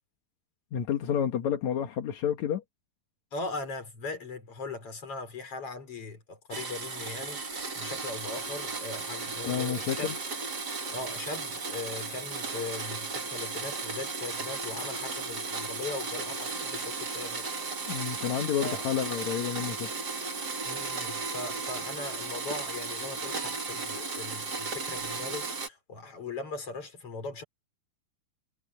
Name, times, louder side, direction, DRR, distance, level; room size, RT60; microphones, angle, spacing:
voice 1, 0.7-2.6 9.5-10.1 17.9-19.9, left 9 dB, 60° left, 2.3 m, -30 dB
voice 2, 3.3-10.1 10.9-17.5 18.6-18.8 20.6-27.4, left 3 dB, 35° left, 5.3 m, -39 dB
Domestic sounds home sounds, 6.5-25.7, right 4 dB, 30° right, 2.3 m, -35 dB
omnidirectional pair, 4.5 m